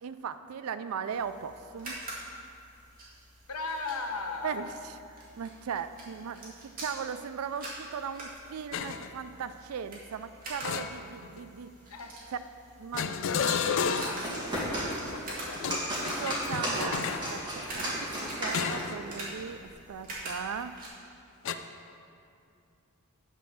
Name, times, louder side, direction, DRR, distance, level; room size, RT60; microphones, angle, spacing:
voice 1, 0.0-2.0 4.4-4.9 5.4-11.7 12.8-14.2 16.2-17.4 17.7-18.1 18.4-20.8, right 7 dB, 70° right, 12 dB, 0.4 m, -38 dB
sound 1, 1.1-20.9, right 1 dB, 40° right, 1.9 m, -45 dB
voice 2, 3.5-4.8 11.9-12.1 13.7-15.6 16.5-16.8, left 3 dB, 75° left, 3 dB, 0.9 m, -38 dB
sound 2, 8.7-9.1 10.6-11.4 12.9-14.3 15.5-17.3 18.5-19.0 19.4-19.6 21.4-21.5, left 6 dB, 60° left, 0.4 m, -32 dB
sound 3, 13.7-19.0, equal, 20° right, 2.1 m, -34 dB
9.2 x 4.7 x 6.3 m, 2.5 s
head